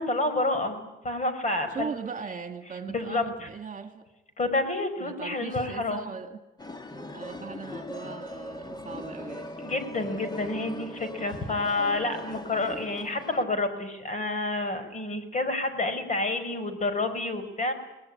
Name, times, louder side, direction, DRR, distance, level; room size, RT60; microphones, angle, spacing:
voice 1, 0.0-1.9 2.9-3.5 4.4-6.0 9.6-17.7, left 2 dB, 40° left, 5.3 m, -29 dB
voice 2, 1.7-4.0 5.0-6.4 7.1-9.5, right 5 dB, 40° right, 2.2 m, -39 dB
sound 1, 6.6-13.4, left 1 dB, 20° left, 2.2 m, -40 dB
21.5 x 20.0 x 10.0 m
cardioid pair, 90°, 20 cm